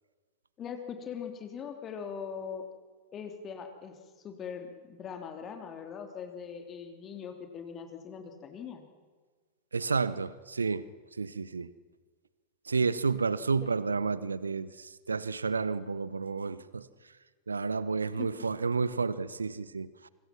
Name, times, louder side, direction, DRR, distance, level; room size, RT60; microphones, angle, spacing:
voice 1, 0.6-2.6 3.1-4.0 4.2-8.8 13.6-13.7 18.2-18.5, left 7 dB, 30° left, 3.0 m, -41 dB
voice 2, 9.7-10.9 11.2-11.7 12.7-16.9 17.5-20.1, right 4 dB, 75° right, 0.9 m, -31 dB
27.5 x 25.0 x 6.1 m
figure-of-eight pair, 90°, 0 cm